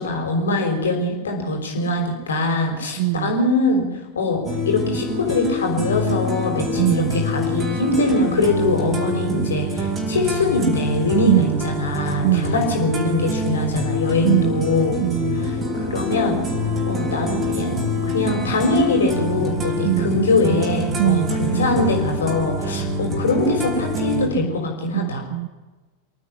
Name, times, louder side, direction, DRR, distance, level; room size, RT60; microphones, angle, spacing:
voice 1, 0.0-3.8 4.1-15.0 15.7-16.4 16.9-17.8 18.1-25.2, left 2 dB, 70° left, 2 dB, 5.9 m, -22 dB
voice 2, 3.0-3.4 6.8-7.2 11.3-11.7 12.2-12.7 14.2-15.5 19.8-20.2 21.0-21.3 24.9-25.5, right 17 dB, 50° right, 10 dB, 0.9 m, -22 dB
sound 1, 4.5-24.3, equal, 25° right, 4.1 m, -25 dB
27.5 x 9.5 x 9.9 m, 1.2 s
figure-of-eight pair, 90°, 0 cm